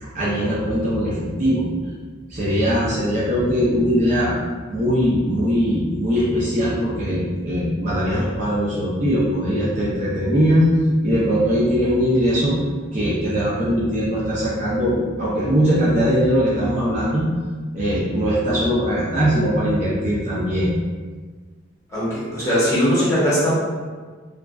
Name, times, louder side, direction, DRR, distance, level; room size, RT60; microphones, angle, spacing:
voice 1, 0.0-1.7 2.3-4.3 4.7-10.7 11.0-12.6 12.9-17.3 17.7-20.7, equal, 35° right, -8 dB, 0.5 m, -20 dB
voice 2, 21.9-23.5, equal, 15° left, -11 dB, 0.9 m, -20 dB
2.5 x 2.2 x 2.3 m, 1.5 s
head